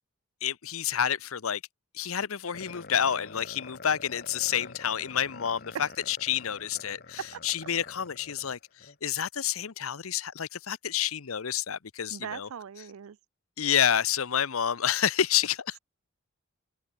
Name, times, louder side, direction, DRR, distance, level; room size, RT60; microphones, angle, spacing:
voice 1, 0.4-1.6 1.9-12.5 13.6-15.8, left 9 dB, 80° left, 0.8 m, -29 dB
sound 1, 2.5-9.0, left 3 dB, 45° left, 2.6 m, -47 dB
voice 2, 12.1-13.2, right 7 dB, 75° right, 0.4 m, -40 dB
open air
head